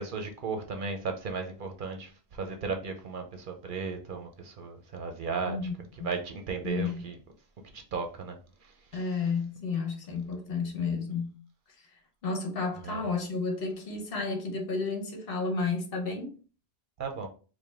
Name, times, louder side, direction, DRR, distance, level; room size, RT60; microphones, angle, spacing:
voice 1, 0.0-5.6 6.0-7.2 7.7-8.4 8.6-9.1 12.8-13.0 17.0-17.3, right 4 dB, 60° right, 0.7 m, -35 dB
voice 2, 6.6-7.0 8.9-11.3 12.2-16.3, left 4 dB, 65° left, 1.1 m, -32 dB
4.7 x 2.1 x 3.4 m
omnidirectional pair, 1.1 m